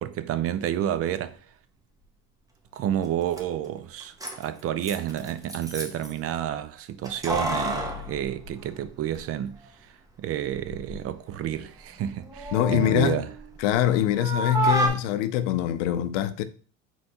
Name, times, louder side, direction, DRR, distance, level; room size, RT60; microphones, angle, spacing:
voice 1, 0.0-1.4 2.7-9.9 10.2-13.3, right 11 dB, 40° right, 0.4 m, -30 dB
Keys jangling, 3.0-3.1 3.3-3.4 4.0-6.1 7.0-9.2 9.5-9.6 10.5-11.0 11.4-13.9 14.2-14.9, right 2 dB, 10° right, 0.7 m, -30 dB
voice 2, 12.5-13.2 13.6-16.4, left 12 dB, 85° left, 0.5 m, -24 dB
4.2 x 3.8 x 2.9 m
supercardioid pair, 110°, 36 cm